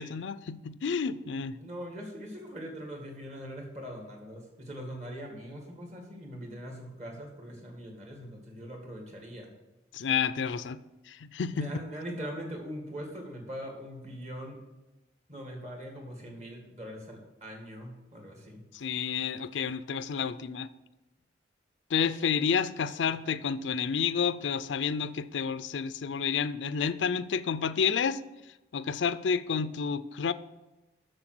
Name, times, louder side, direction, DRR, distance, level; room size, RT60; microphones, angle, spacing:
voice 1, 0.0-1.6 9.9-10.8 11.1-11.7 18.7-20.7 21.9-28.2 28.7-30.3, left 6 dB, 90° left, 14 dB, 0.4 m, -30 dB
voice 2, 1.6-9.5 11.5-14.6 15.3-18.6, equal, 40° right, 1 dB, 2.1 m, -41 dB
7.8 x 6.6 x 6.1 m, 1.0 s
head